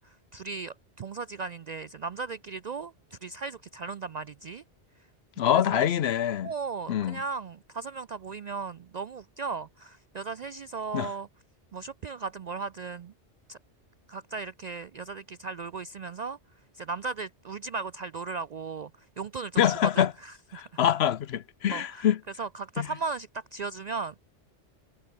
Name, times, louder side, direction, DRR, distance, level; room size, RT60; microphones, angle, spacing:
voice 1, 0.0-4.6 5.5-5.9 6.4-11.3 11.7-13.1 13.5-13.6 14.1-16.4 16.7-20.7 21.7-22.1 22.4-24.2, right 4 dB, 60° right, 0.4 m, -37 dB
voice 2, 5.4-6.5 6.9-7.2 10.9-11.1 19.6-20.1 20.5-22.2 22.8-22.9, left 10 dB, 65° left, 0.9 m, -25 dB
omnidirectional pair, 1.2 m